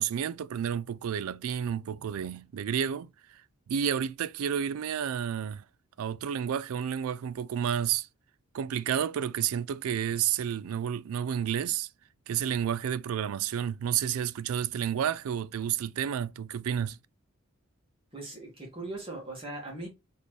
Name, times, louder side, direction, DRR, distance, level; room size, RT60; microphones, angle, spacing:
voice 1, 0.0-3.4 3.7-5.6 6.0-8.1 8.5-11.9 12.3-17.0, right 9 dB, 80° right, 0.3 m, -30 dB
voice 2, 18.1-19.9, right 2 dB, 25° right, 1.8 m, -39 dB
4.1 x 3.4 x 3.1 m
head